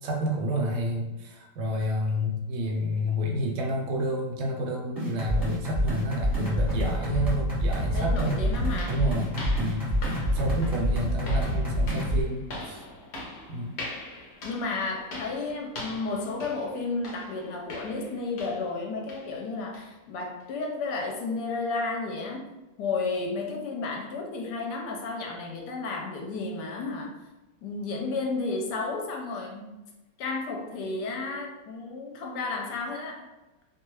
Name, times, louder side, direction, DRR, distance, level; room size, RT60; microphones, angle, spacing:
voice 1, 0.0-8.4 8.9-9.9 10.3-12.8 13.5-13.7, equal, 80° right, 0 dB, 1.2 m, -30 dB
sound 1, 5.0-12.2, equal, 15° right, 0.8 m, -27 dB
voice 2, 6.4-6.8 7.9-9.0 14.4-22.4 22.8-27.2 27.6-29.7 30.2-33.3, left 3 dB, 75° left, 1 dB, 1.1 m, -32 dB
sound 2, 7.6-7.7 8.2-18.8 19.1-19.4 19.7-19.9 20.4-20.5 21.0-21.1, left 1 dB, 55° left, 0.7 m, -42 dB
2.8 x 2.3 x 3.0 m, 1.1 s
omnidirectional pair, 1.9 m